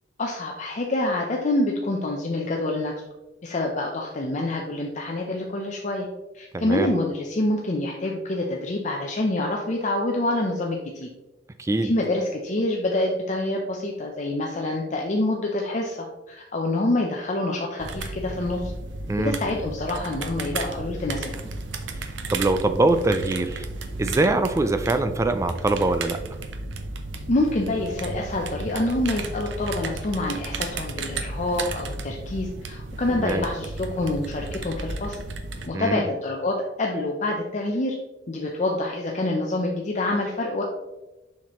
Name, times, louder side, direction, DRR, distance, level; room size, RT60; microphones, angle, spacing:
voice 1, 0.2-2.9 3.4-6.1 6.3-11.1 11.8-18.7 19.2-21.3 27.3-35.2 35.7-38.0 38.3-40.6, left 2 dB, 40° left, 0 dB, 0.7 m, -26 dB
voice 2, 6.5-6.9 11.6-11.9 19.1-19.3 22.3-23.7 24.0-26.2 33.1-33.5 35.7-36.0, right 2 dB, 15° right, 9 dB, 0.3 m, -23 dB
sound 1, 17.8-35.7, right 3 dB, 85° right, 0.7 m, -34 dB
7.2 x 5.8 x 3.0 m, 1.0 s
head